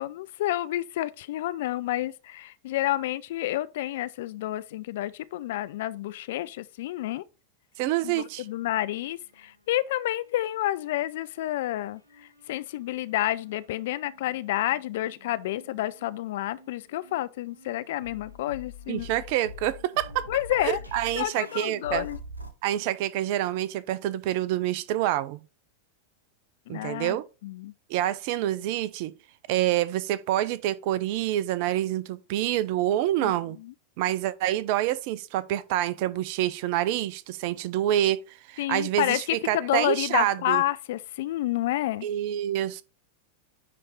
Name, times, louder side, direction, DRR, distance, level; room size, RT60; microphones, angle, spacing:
voice 1, 0.0-7.2 8.0-19.1 20.3-20.8 21.1-22.2 26.7-27.2 27.4-27.7 33.2-33.3 33.6-33.7 38.6-42.1, left 14 dB, 55° left, 0.4 m, -29 dB
voice 2, 7.8-8.4 18.9-20.3 20.6-22.0 22.6-25.4 26.7-27.3 27.9-29.1 29.5-33.6 34.0-40.6 42.0-42.8, right 13 dB, 45° right, 0.5 m, -27 dB
sound 1, 8.0-9.6 10.0-11.3 12.0-22.5, left 2 dB, 85° right, 1.0 m, -47 dB
9.8 x 3.3 x 4.1 m
figure-of-eight pair, 90°, 0 cm